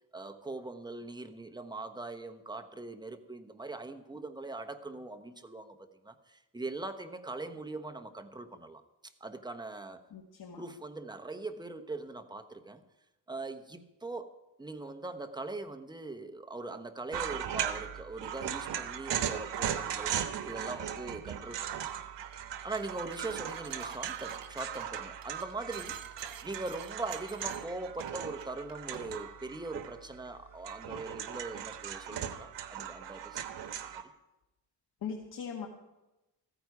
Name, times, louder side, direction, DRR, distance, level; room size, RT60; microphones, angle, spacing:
voice 1, 0.1-8.8 9.2-10.0 10.6-12.8 13.3-14.3 14.6-21.8 22.6-26.0 26.4-34.0, right 2 dB, 10° right, 6 dB, 1.0 m, -41 dB
voice 2, 10.1-10.6 35.0-35.7, left 6 dB, 60° left, 2 dB, 1.6 m, -40 dB
sound 1, 17.1-30.2 30.5-34.0, right 9 dB, 85° right, 1.2 m, -38 dB
sound 2, 22.2-22.5 22.8-29.1, right 8 dB, 55° right, 1.1 m, -51 dB
sound 3, 25.9-31.9, right 3 dB, 30° right, 6.5 m, -65 dB
15.0 x 14.0 x 4.8 m, 0.99 s
cardioid pair, 120°, 41 cm